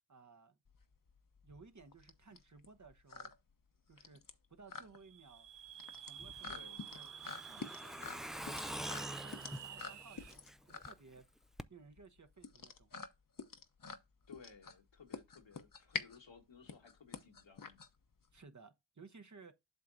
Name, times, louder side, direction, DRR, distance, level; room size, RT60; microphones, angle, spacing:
voice 1, 0.1-0.6 1.4-3.3 3.9-4.2 4.5-5.5 5.9-11.3 11.7-12.9 18.3-19.5, right 4 dB, 40° right, 1.0 m, -59 dB
sound 1, 0.6-18.4, left 5 dB, 45° left, 0.9 m, -48 dB
sound 2, 5.0-10.3, right 9 dB, 70° right, 0.6 m, -51 dB
Truck, 6.2-10.9 11.2-11.3 11.6-11.7, equal, ahead, 0.4 m, -46 dB
voice 2, 6.5-6.9 14.3-17.8, left 5 dB, 70° left, 1.6 m, -58 dB
8.0 x 5.9 x 2.7 m
cardioid pair, 45°, 45 cm